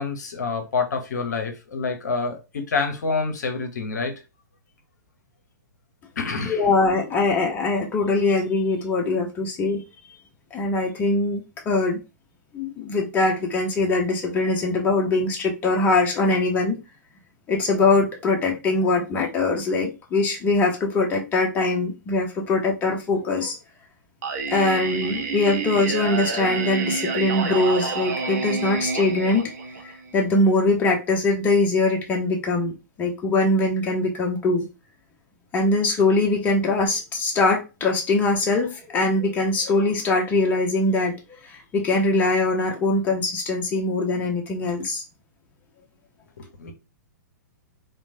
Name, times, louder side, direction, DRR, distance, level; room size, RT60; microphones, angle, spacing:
voice 1, 0.0-4.1 6.2-6.7 46.4-46.7, left 4 dB, 65° left, 0.7 m, -27 dB
voice 2, 6.5-9.8 10.5-11.4 11.7-12.0 12.5-16.8 17.5-23.6 24.5-29.5 29.8-34.7 35.5-41.2 41.4-45.0, left 2 dB, 15° left, 0.6 m, -22 dB
Singing, 24.2-30.2, right 4 dB, 50° right, 0.7 m, -28 dB
3.0 x 2.1 x 2.5 m
figure-of-eight pair, 110°, 10 cm